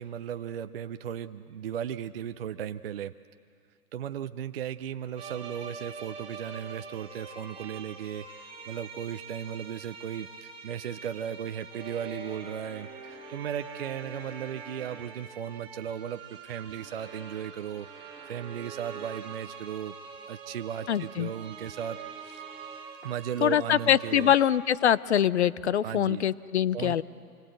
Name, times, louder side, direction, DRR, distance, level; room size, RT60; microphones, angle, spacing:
voice 1, 0.0-3.1 3.9-17.9 18.3-20.0 20.3-22.4 23.0-24.3 25.8-26.2 26.7-27.0, right 9 dB, 40° right, 9 dB, 0.5 m, -36 dB
sound 1, 5.2-24.6, right 5 dB, 10° right, 2.0 m, -44 dB
voice 2, 20.9-21.3 23.4-27.0, left 10 dB, 50° left, 19 dB, 0.6 m, -24 dB
26.0 x 20.5 x 8.0 m, 2.2 s
hypercardioid pair, 135°, 46 cm